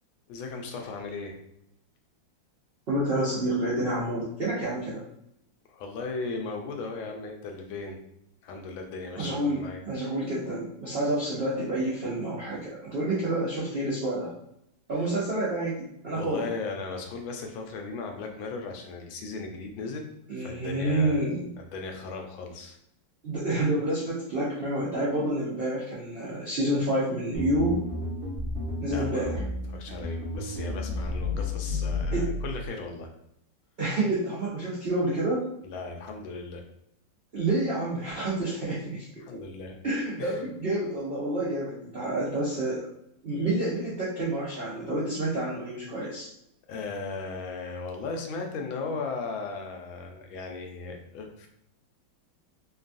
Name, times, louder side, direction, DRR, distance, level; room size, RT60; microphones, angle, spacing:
voice 1, 0.3-1.4 5.7-8.0 8.4-10.1 16.1-20.1 20.4-21.2 21.6-22.8 28.8-29.3 29.7-33.1 35.6-36.6 39.2-39.8 40.2-40.4 46.7-51.5, left 4 dB, 90° left, 3 dB, 1.4 m, -37 dB
voice 2, 2.9-5.0 9.2-14.3 14.9-16.5 20.3-21.5 23.2-27.8 28.8-29.4 32.1-32.3 33.8-35.5 37.3-39.2 39.8-42.9 43.2-46.3, right 1 dB, 85° right, -7 dB, 0.5 m, -28 dB
sound 1, 27.3-32.7, left 2 dB, 60° right, 1.0 m, -32 dB
3.4 x 2.3 x 2.5 m, 0.76 s
omnidirectional pair, 2.1 m